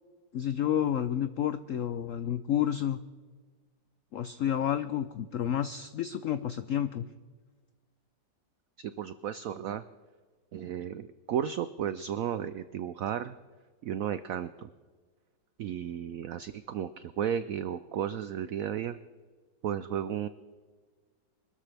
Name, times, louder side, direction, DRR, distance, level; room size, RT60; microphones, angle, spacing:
voice 1, 0.3-3.0 4.1-7.1, left 10 dB, 85° left, 12 dB, 0.7 m, -30 dB
voice 2, 8.8-9.8 10.5-13.3 13.8-14.7 15.6-19.0 19.6-20.3, right 9 dB, 85° right, 13 dB, 0.7 m, -34 dB
25.0 x 13.0 x 3.4 m, 1.4 s
omnidirectional pair, 2.0 m